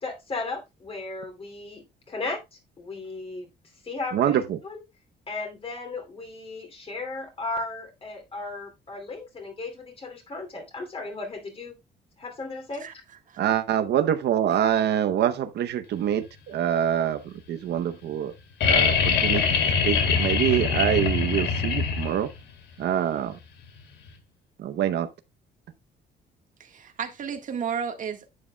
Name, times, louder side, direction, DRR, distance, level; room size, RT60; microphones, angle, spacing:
voice 1, 0.0-3.5 3.8-4.8 5.3-11.8 12.2-12.9, left 3 dB, 30° left, 2.7 m, -35 dB
voice 2, 4.1-4.6 13.4-18.3 18.6-22.3 22.8-23.4 24.6-25.1, right 10 dB, 70° right, 0.8 m, -25 dB
voice 3, 12.8-13.4 14.5-14.6 26.6-28.3, right 7 dB, 45° right, 1.5 m, -33 dB
sound 1, 18.6-22.4 24.1-24.2, left 6 dB, 80° left, 2.6 m, -23 dB
11.0 x 8.8 x 2.2 m
cardioid pair, 140°, 18 cm